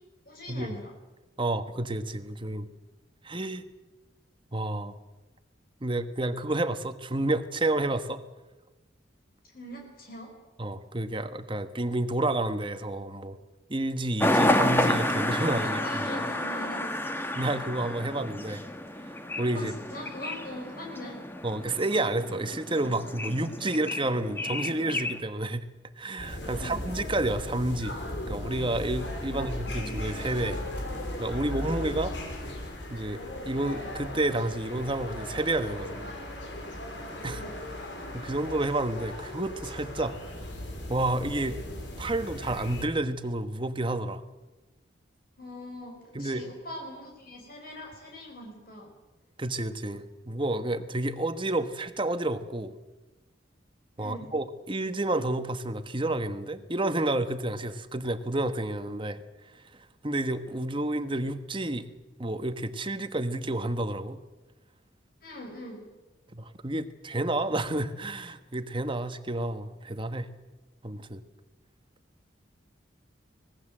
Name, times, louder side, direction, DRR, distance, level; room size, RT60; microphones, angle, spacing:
voice 1, 0.2-0.9 9.4-10.3 15.6-17.2 19.5-21.2 26.5-26.9 29.2-29.8 37.4-37.5 45.4-48.9 54.0-54.3 65.2-65.9, left 1 dB, 50° left, 1 dB, 5.6 m, -42 dB
voice 2, 1.4-2.7 3.2-3.6 4.5-4.9 5.8-8.2 10.6-13.4 13.7-15.8 17.3-18.6 19.4-19.7 21.4-25.6 26.0-27.9 28.2-30.6 31.2-32.1 32.9-33.2 33.4-36.0 37.2-37.4 38.1-40.2 40.9-41.6 42.0-44.2 46.1-46.4 49.4-52.7 54.0-59.2 60.0-61.9 62.2-64.2 66.3-70.3 70.8-71.2, right 2 dB, 25° right, 10 dB, 1.3 m, -30 dB
sound 1, 14.2-25.2, left 1 dB, 10° left, 1.6 m, -30 dB
sound 2, 26.2-42.9, left 1 dB, 70° left, 5.1 m, -37 dB
25.0 x 19.5 x 7.7 m, 1.1 s
head